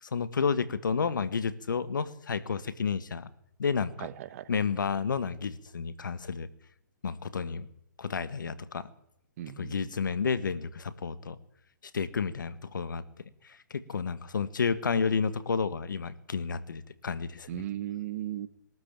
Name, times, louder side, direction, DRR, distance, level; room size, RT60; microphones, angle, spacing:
voice 1, 0.0-3.3 3.6-4.1 4.5-6.5 7.0-7.7 8.0-8.9 9.6-11.4 11.8-13.0 13.4-17.6, left 5 dB, 80° left, 14 dB, 1.7 m, -31 dB
voice 2, 4.0-4.5 9.4-9.8 17.5-18.5, right 13 dB, 50° right, 15 dB, 1.4 m, -36 dB
22.5 x 13.0 x 9.0 m, 0.77 s
hypercardioid pair, 135°, 10 cm